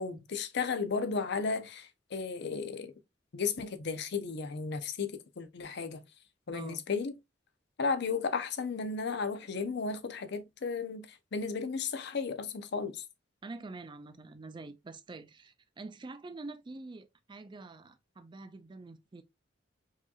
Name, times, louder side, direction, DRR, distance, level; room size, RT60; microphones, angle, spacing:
voice 1, 0.0-2.9 3.3-6.0 6.5-7.1 7.8-13.0, left 5 dB, 60° left, 0.6 m, -34 dB
voice 2, 6.5-6.8 13.4-19.2, right 3 dB, 25° right, 0.4 m, -46 dB
4.7 x 2.8 x 2.3 m
head